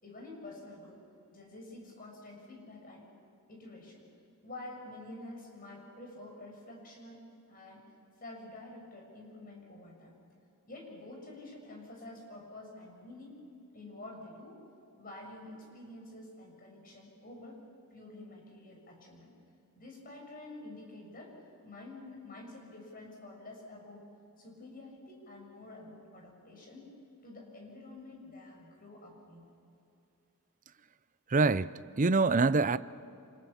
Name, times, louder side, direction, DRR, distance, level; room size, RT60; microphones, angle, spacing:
voice 1, 0.0-1.0 1.3-3.0 3.5-4.0 4.4-7.2 7.5-7.8 8.2-10.1 10.7-13.4 13.7-14.6 15.0-17.6 17.9-19.3 19.7-21.3 21.6-24.1 24.4-26.9 27.2-29.5, left 2 dB, 40° left, 6.8 m, -48 dB
voice 2, 31.3-32.8, right 3 dB, 35° right, 0.6 m, -25 dB
30.0 x 27.5 x 7.3 m
head